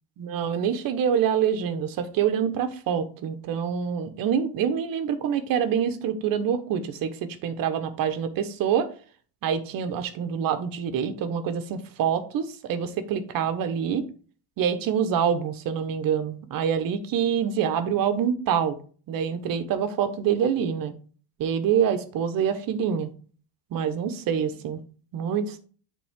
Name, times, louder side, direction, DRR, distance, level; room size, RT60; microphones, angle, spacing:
voice 1, 0.2-7.2 7.4-8.9 9.4-14.1 14.6-18.8 19.1-20.9 21.4-23.1 23.7-24.8 25.1-25.6, right 8 dB, 45° right, 10 dB, 1.0 m, -26 dB
9.0 x 3.9 x 3.6 m, 0.41 s
cardioid pair, 135°, 47 cm